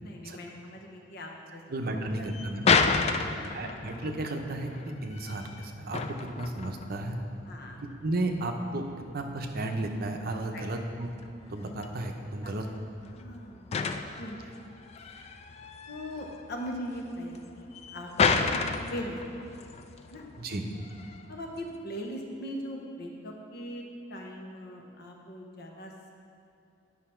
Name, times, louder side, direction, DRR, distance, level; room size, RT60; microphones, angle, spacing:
voice 1, 0.0-1.6 1.9-2.0 2.5-2.6 3.1-3.7 7.5-7.8 10.5-10.6 12.4-12.5 13.0-14.4 15.0-15.4 15.9-19.2 20.1-20.2 21.3-23.8 24.1-25.9, equal, 55° left, 1 dB, 0.9 m, -40 dB
voice 2, 1.7-2.7 3.4-7.2 8.0-8.9 9.1-11.1 11.5-12.7 20.4-20.7, right 2 dB, 50° right, 4 dB, 0.7 m, -33 dB
sound 1, 2.0-21.8, left 4 dB, 35° left, 0.3 m, -33 dB
9.5 x 5.8 x 4.4 m, 2.7 s
head